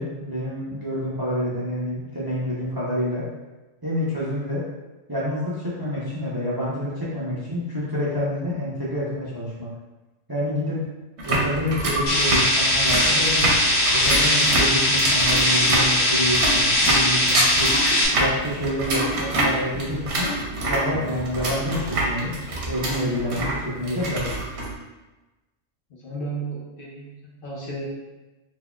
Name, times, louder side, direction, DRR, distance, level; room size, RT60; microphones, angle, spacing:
voice 1, 0.0-3.2 3.8-4.6 5.1-9.7 10.3-10.8 11.2-13.5 13.9-17.7 18.2-20.3 20.7-22.3 22.7-24.4, equal, 25° right, -8 dB, 0.5 m, -28 dB
sommerreifen drauf, 11.2-24.7, right 1 dB, 60° right, 1.0 m, -26 dB
sound 1, 12.1-18.1, left 1 dB, 80° left, 1.4 m, -20 dB
voice 2, 25.9-27.9, right 3 dB, 50° left, -5 dB, 0.8 m, -34 dB
4.0 x 3.0 x 2.3 m, 1.1 s
omnidirectional pair, 1.3 m